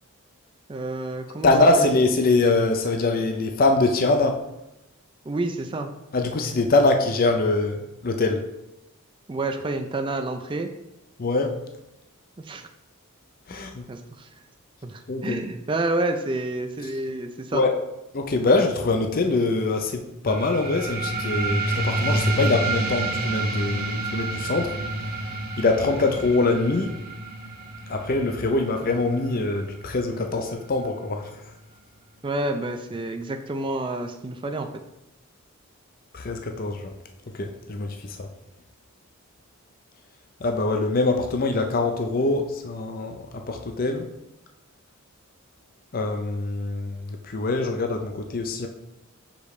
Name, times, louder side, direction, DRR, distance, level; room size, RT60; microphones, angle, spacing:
voice 1, 0.7-1.9 5.3-5.9 9.3-10.7 12.4-12.7 13.5-14.3 14.8-17.6 32.2-34.8, right 2 dB, 25° right, 6 dB, 0.4 m, -29 dB
voice 2, 1.4-4.4 6.1-8.4 11.2-11.6 13.5-13.9 15.1-15.5 17.5-17.7 18.1-24.8 25.6-26.9 27.9-31.3 36.1-36.9 37.3-38.3 40.4-44.0 45.9-48.7, left 3 dB, 40° left, 4 dB, 0.5 m, -23 dB
sound 1, 20.3-31.3, right 2 dB, 45° right, 0.9 m, -29 dB
6.6 x 5.1 x 3.2 m, 0.90 s
head